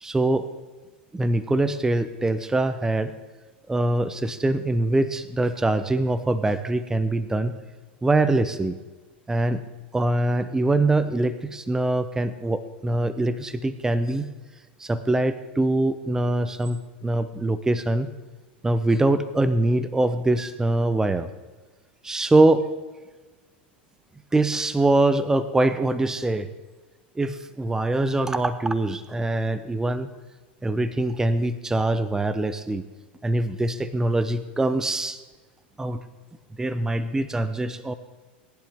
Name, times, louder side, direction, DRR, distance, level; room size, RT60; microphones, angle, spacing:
voice 1, 0.0-0.5 1.1-3.1 3.7-7.6 8.0-8.8 9.3-9.6 9.9-14.3 14.8-18.1 18.6-21.3 22.0-22.7 24.3-26.5 27.2-30.1 30.6-32.8 33.2-35.2 35.8-36.0 36.6-37.9, right 2 dB, 10° right, 13 dB, 0.7 m, -23 dB
18.0 x 11.0 x 3.5 m, 1.3 s
hypercardioid pair, 105°, 6 cm